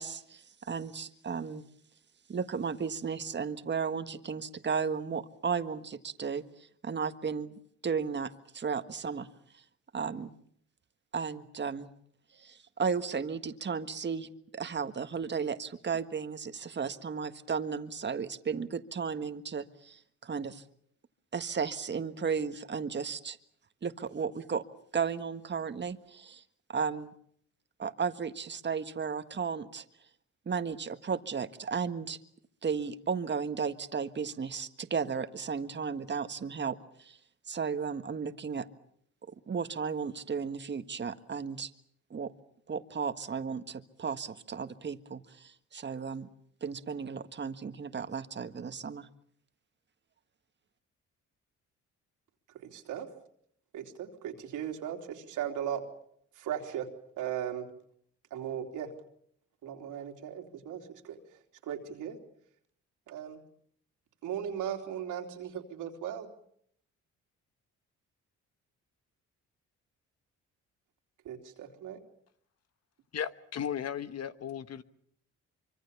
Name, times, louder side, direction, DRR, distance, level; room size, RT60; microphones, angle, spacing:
voice 1, 0.0-1.6 2.3-7.5 7.8-9.3 9.9-10.3 11.1-11.9 12.4-20.6 21.3-23.4 23.8-24.6 24.9-26.4 26.7-27.1 27.8-29.8 30.4-32.2 32.6-37.2 37.5-38.7 39.3-41.7 42.1-42.3 42.7-46.3 46.6-49.1, right 6 dB, 35° right, 1.7 m, -34 dB
voice 2, 52.6-53.1 53.7-55.8 56.4-56.9 57.2-57.7 58.3-58.9 59.6-61.2 61.6-62.2 63.1-63.4 64.2-66.3 71.2-72.0, right 9 dB, 85° right, 3.4 m, -37 dB
voice 3, 73.1-74.8, left 8 dB, 55° left, 1.3 m, -35 dB
25.0 x 25.0 x 7.2 m
cardioid pair, 90°, 30 cm